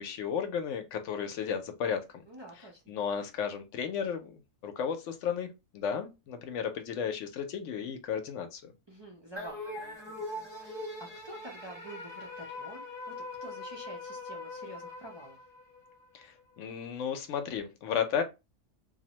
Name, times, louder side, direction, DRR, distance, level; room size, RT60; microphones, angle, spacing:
voice 1, 0.0-2.2 2.9-8.7 16.1-18.2, left 7 dB, 75° left, 0.9 m, -34 dB
voice 2, 2.2-2.9 8.9-15.5, right 1 dB, 45° right, 0.3 m, -49 dB
sound 1, 9.4-15.9, left 2 dB, 5° left, 0.8 m, -42 dB
2.6 x 2.1 x 2.8 m
omnidirectional pair, 1.3 m